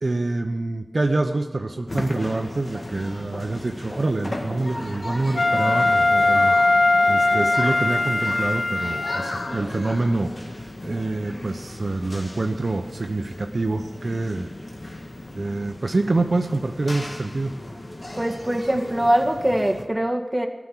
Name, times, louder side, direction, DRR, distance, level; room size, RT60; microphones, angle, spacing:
voice 1, 0.0-6.6 7.1-10.3 10.8-14.5 15.3-17.6, right 2 dB, 65° right, 4 dB, 0.9 m, -26 dB
sound 1, 1.9-19.8, left 1 dB, 45° left, 1.8 m, -36 dB
Wind instrument woodwind instrument, 5.3-9.6, left 2 dB, 75° left, 0.7 m, -20 dB
voice 2, 18.2-20.5, right 1 dB, 20° right, 1 dB, 1.7 m, -22 dB
16.0 x 6.1 x 9.8 m, 1.1 s
wide cardioid pair, 70°, 0 cm